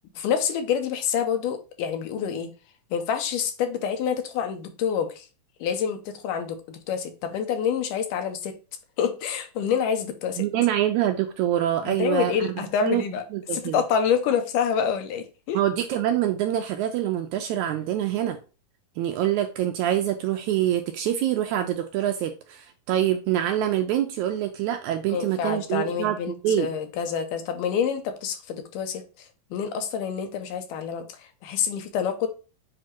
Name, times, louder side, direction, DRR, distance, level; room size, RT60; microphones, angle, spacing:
voice 1, 0.2-2.5 2.9-5.3 5.6-8.6 9.0-10.4 11.8-13.2 13.5-15.6 25.1-32.3, left 7 dB, 80° left, 2.4 m, -27 dB
voice 2, 10.4-12.5 12.8-13.0 13.3-13.8 15.5-18.4 19.0-26.7, right 11 dB, 80° right, 1.7 m, -25 dB
7.6 x 2.9 x 4.3 m
omnidirectional pair, 3.8 m